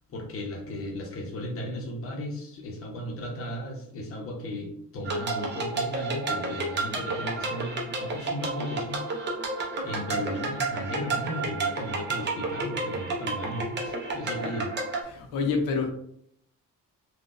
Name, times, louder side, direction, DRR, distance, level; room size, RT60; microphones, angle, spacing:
voice 1, 0.1-9.0 9.8-14.7, left 1 dB, 40° left, 0 dB, 0.8 m, -35 dB
sound 1, 5.0-15.0, right 3 dB, 30° right, 0.6 m, -31 dB
voice 2, 15.0-15.9, left 4 dB, 75° left, 4 dB, 0.8 m, -27 dB
3.7 x 2.3 x 2.5 m, 0.70 s
cardioid pair, 160°, 34 cm